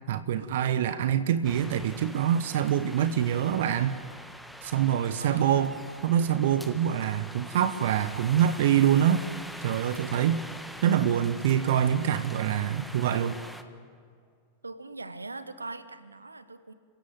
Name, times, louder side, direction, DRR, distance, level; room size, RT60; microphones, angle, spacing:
voice 1, 0.1-4.0 4.6-5.8 6.0-9.2 9.6-10.4 10.8-13.4, right 9 dB, 55° right, 13 dB, 1.0 m, -25 dB
sound 1, 1.4-13.6, equal, ahead, 1.4 m, -44 dB
voice 2, 5.2-5.7 14.6-16.7, right 3 dB, 80° right, 13 dB, 1.1 m, -41 dB
27.5 x 16.5 x 9.5 m, 2.2 s
figure-of-eight pair, 90°, 0 cm